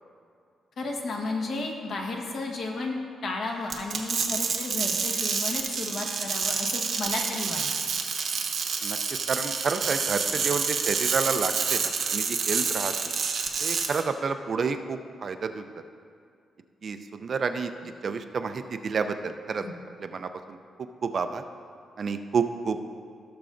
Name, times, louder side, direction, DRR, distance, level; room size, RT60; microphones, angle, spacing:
voice 1, 0.8-3.0 3.2-7.6 19.6-19.7, left 3 dB, 60° left, 1 dB, 1.3 m, -33 dB
sound 1, 3.7-14.0, right 5 dB, 65° right, 0.9 m, -28 dB
voice 2, 9.3-12.9 13.6-15.7 16.8-17.7 18.0-19.6 20.0-20.6 21.0-21.4 22.0-22.9, right 5 dB, 45° right, 8 dB, 0.4 m, -30 dB
17.0 x 6.8 x 2.6 m, 2.3 s
wide cardioid pair, 145°, 0 cm